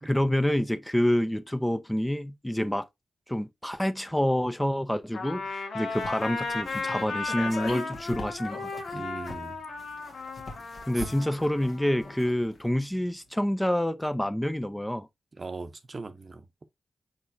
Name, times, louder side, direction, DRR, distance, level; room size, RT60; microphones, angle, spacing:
voice 1, 0.0-2.9 3.3-8.7 10.9-15.1, left 1 dB, 10° left, 0.5 m, -27 dB
Trumpet, 5.1-12.2, left 3 dB, 80° left, 1.4 m, -35 dB
sound 1, 5.9-12.7 12.9-13.0, left 2 dB, 65° left, 1.6 m, -42 dB
voice 2, 8.9-9.6 10.9-11.1 15.4-16.7, right 3 dB, 40° right, 0.7 m, -40 dB
4.9 x 4.1 x 2.6 m
cardioid pair, 60°, 0 cm